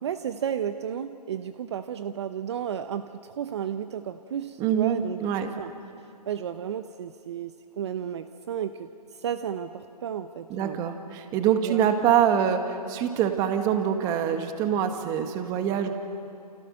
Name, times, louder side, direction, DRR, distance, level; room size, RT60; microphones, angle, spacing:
voice 1, 0.0-5.7 6.3-10.8 11.6-11.9 15.9-16.0, right 9 dB, 40° right, 10 dB, 0.9 m, -33 dB
voice 2, 4.6-5.5 10.5-15.9, right 9 dB, 15° right, 7 dB, 1.6 m, -25 dB
29.5 x 29.0 x 6.5 m, 2.5 s
hypercardioid pair, 155°, 21 cm